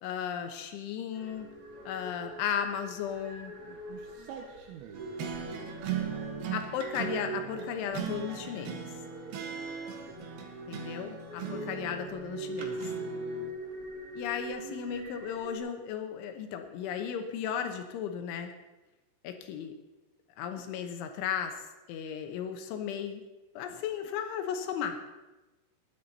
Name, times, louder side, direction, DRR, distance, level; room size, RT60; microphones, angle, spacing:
voice 1, 0.0-1.5 1.9-3.5 6.5-8.9 10.7-12.9 14.2-18.5 19.2-19.7 20.4-21.6 21.9-23.2 23.5-25.0, left 8 dB, 75° left, 6 dB, 3.3 m, -35 dB
sound 1, 1.1-15.6, right 1 dB, 40° right, 2.0 m, -43 dB
voice 2, 3.6-6.5 10.0-10.2 11.8-11.9, right 7 dB, 80° right, 2 dB, 3.7 m, -49 dB
sound 2, 4.9-13.5, right 7 dB, 65° right, 2.6 m, -39 dB
20.0 x 10.5 x 4.2 m, 1.1 s
omnidirectional pair, 5.8 m